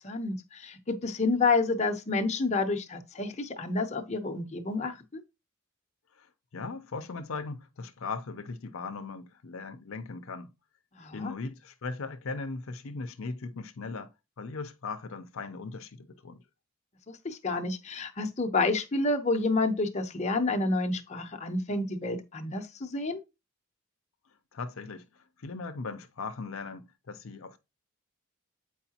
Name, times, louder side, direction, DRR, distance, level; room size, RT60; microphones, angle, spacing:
voice 1, 0.0-5.2 11.0-11.3 17.1-23.2, left 3 dB, 35° left, 0.7 m, -29 dB
voice 2, 6.5-10.5 11.1-14.1 14.4-16.4 24.5-25.1 25.4-27.6, left 4 dB, 75° left, 0.6 m, -38 dB
8.0 x 4.7 x 2.8 m
head